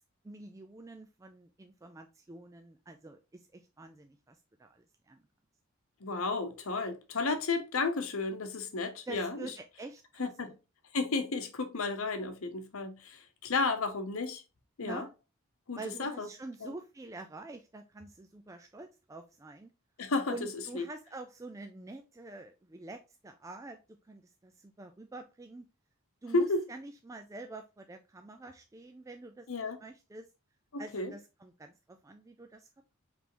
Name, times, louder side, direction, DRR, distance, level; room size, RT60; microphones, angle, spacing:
voice 1, 0.2-5.2 9.1-10.5 14.8-15.1 15.8-19.7 20.3-23.8 24.0-25.7 26.2-30.3 30.8-32.7, right 2 dB, 15° right, 0.3 m, -47 dB
voice 2, 6.0-9.5 10.2-10.5 10.9-14.4 14.8-15.1 15.7-16.3 16.6-16.7 20.0-20.3 20.7-20.8 26.3-26.6 29.5-29.8 30.7-31.1, left 3 dB, 80° left, 0.9 m, -32 dB
5.0 x 3.4 x 3.0 m
head